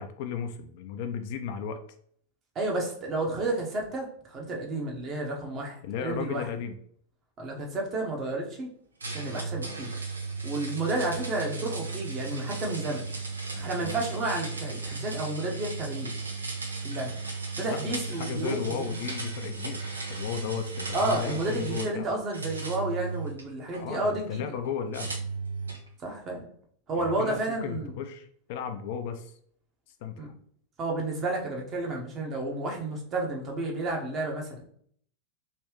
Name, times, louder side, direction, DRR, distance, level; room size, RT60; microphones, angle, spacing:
voice 1, 0.0-1.8 5.8-6.8 13.5-14.0 17.7-22.1 23.8-25.2 27.0-29.3 30.0-30.3, left 7 dB, 50° left, 7 dB, 0.4 m, -35 dB
voice 2, 2.5-6.5 7.4-8.7 9.1-9.9 10.4-13.0 13.5-16.1 16.8-17.2 17.6-18.9 20.9-24.4 26.0-26.5 26.9-27.9 30.2-30.3 30.8-34.6, right 2 dB, 30° right, 0 dB, 0.9 m, -31 dB
sound 1, 9.0-22.0 22.3-23.8 24.9-25.9, right 4 dB, 75° right, 0.6 m, -35 dB
3.2 x 3.0 x 3.0 m, 0.62 s
figure-of-eight pair, 90°, 0 cm